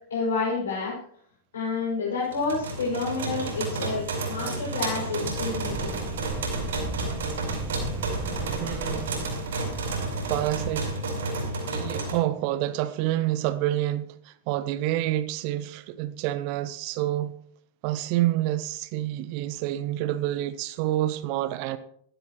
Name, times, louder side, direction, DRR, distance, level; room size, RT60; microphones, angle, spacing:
voice 1, 0.1-0.9 1.5-6.0, left 4 dB, 65° left, 6.0 m, -29 dB
sound 1, 2.3-12.1, right 2 dB, 65° right, 5.0 m, -31 dB
sound 2, 5.2-11.0, right 4 dB, 20° right, 1.2 m, -38 dB
voice 2, 8.6-9.1 10.3-10.9 11.7-17.4 17.8-21.8, right 14 dB, 45° right, 0.8 m, -28 dB
16.0 x 14.5 x 3.0 m
figure-of-eight pair, 90°, 0 cm